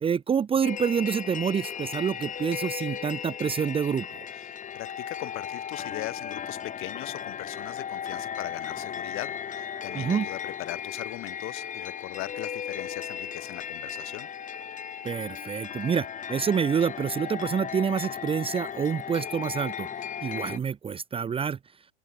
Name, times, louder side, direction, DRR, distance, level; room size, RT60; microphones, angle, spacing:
voice 1, 0.0-4.2 9.9-10.3 15.0-19.9 20.2-21.6, right 7 dB, 15° right, 1.1 m, -27 dB
sound 1, 0.6-20.6, left 8 dB, 20° left, 4.7 m, -36 dB
voice 2, 4.3-14.3, left 20 dB, 35° left, 2.4 m, -39 dB
open air
hypercardioid pair, 105°, 35 cm